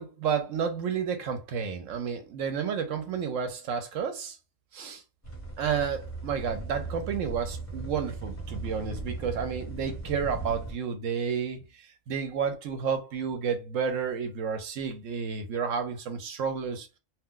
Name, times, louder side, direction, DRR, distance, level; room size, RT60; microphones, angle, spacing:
voice 1, 0.0-4.4 4.7-5.0 5.6-11.6 12.1-16.9, right 6 dB, 80° right, 1.0 m, -31 dB
sound 1, 5.2-10.7, right 3 dB, 10° left, 1.2 m, -38 dB
2.4 x 2.2 x 3.7 m
omnidirectional pair, 1.3 m